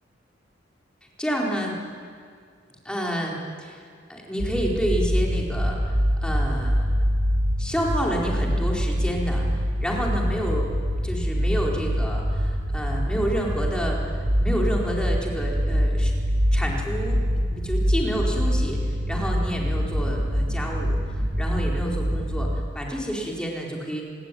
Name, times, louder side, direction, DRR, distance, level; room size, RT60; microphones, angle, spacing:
voice 1, 1.2-1.8 2.8-6.9 7.6-10.7 11.0-16.1 16.5-17.2 17.5-24.0, equal, 5° left, -2 dB, 4.5 m, -29 dB
sound 1, 4.4-22.6, equal, 60° right, 2.7 m, -25 dB
26.5 x 20.5 x 9.4 m, 2.1 s
head